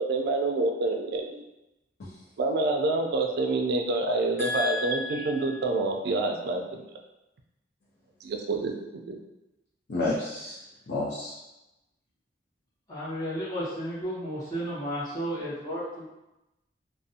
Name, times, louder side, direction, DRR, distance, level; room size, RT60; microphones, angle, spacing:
voice 1, 0.0-1.4 2.4-6.8 8.2-9.2, right 2 dB, 65° right, 3 dB, 0.3 m, -27 dB
voice 2, 4.4-5.3 9.9-10.5 10.9-11.3, left 2 dB, 75° left, -7 dB, 0.5 m, -30 dB
voice 3, 12.9-16.0, equal, 20° left, -11 dB, 0.7 m, -33 dB
2.4 x 2.0 x 2.7 m, 0.95 s
head